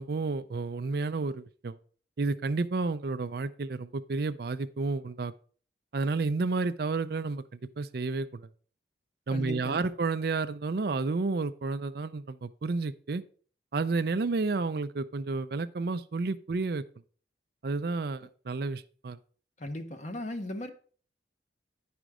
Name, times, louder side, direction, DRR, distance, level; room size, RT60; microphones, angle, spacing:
voice 1, 0.0-1.8 2.2-5.3 5.9-7.4 7.8-8.5 9.3-13.2 13.7-16.8 17.6-19.2, right 3 dB, 55° right, 0.4 m, -31 dB
voice 2, 9.3-9.9 19.6-20.7, left 1 dB, 40° left, 0.9 m, -37 dB
10.0 x 5.1 x 4.8 m
head